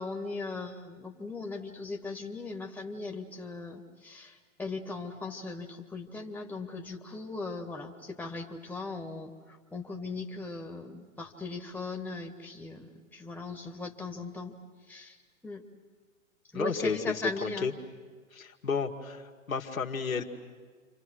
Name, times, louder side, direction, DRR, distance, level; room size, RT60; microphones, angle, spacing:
voice 1, 0.0-9.3 9.7-14.5 14.9-15.2 15.4-15.6 16.5-17.7, left 3 dB, 5° left, 2 dB, 1.8 m, -38 dB
voice 2, 16.5-17.7 18.3-20.2, left 5 dB, 85° left, 2 dB, 2.0 m, -32 dB
29.5 x 25.5 x 6.4 m, 1.5 s
figure-of-eight pair, 115°, 40 cm